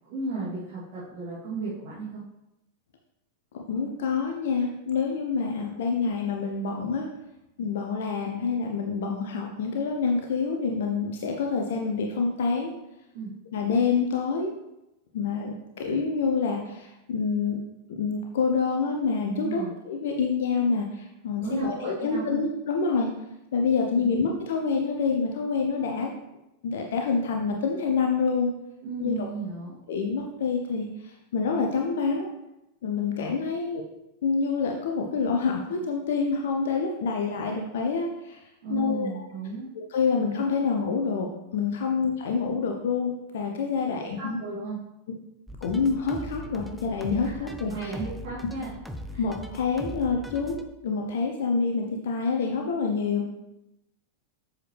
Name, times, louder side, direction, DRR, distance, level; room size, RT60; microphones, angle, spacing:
voice 1, 0.1-2.2 13.1-13.3 19.3-19.7 21.4-22.2 23.9-24.1 28.8-29.7 38.6-39.7 44.2-44.8 47.2-48.7 49.1-49.2, right 3 dB, 45° right, -9 dB, 2.7 m, -34 dB
voice 2, 3.5-7.1 7.6-12.7 13.5-14.5 15.1-17.6 17.9-23.1 23.5-26.1 26.6-28.5 29.0-29.1 29.9-32.3 32.8-33.8 34.2-38.4 38.7-39.1 39.7-41.3 41.5-44.4 45.6-47.9 49.2-50.6 50.8-53.3, left 5 dB, 60° left, 2 dB, 0.8 m, -27 dB
sound 1, 45.5-50.6, left 1 dB, ahead, 0.6 m, -39 dB
7.8 x 6.6 x 3.3 m, 0.90 s
figure-of-eight pair, 90°, 0 cm